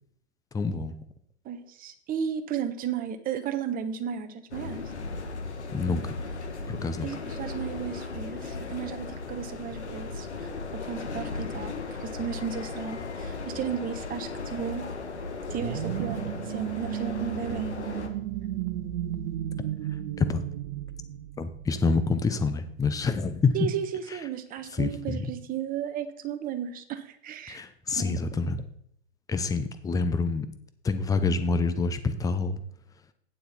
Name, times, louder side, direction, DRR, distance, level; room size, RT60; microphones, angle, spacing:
voice 1, 0.5-1.0 5.7-6.2 6.7-7.1 20.2-20.4 21.4-23.5 24.7-25.3 27.5-28.6 29.3-30.5 30.8-32.6, left 4 dB, 10° left, 11 dB, 0.7 m, -27 dB
voice 2, 1.4-4.8 7.0-14.9 15.5-17.7 23.5-27.6 27.9-28.1, right 8 dB, 25° right, 9 dB, 1.2 m, -34 dB
sound 1, 4.5-18.1, left 4 dB, 80° left, 1.7 m, -36 dB
sound 2, 15.5-22.0, right 12 dB, 50° right, 1.0 m, -34 dB
11.5 x 9.3 x 4.2 m, 0.70 s
hypercardioid pair, 105°, 33 cm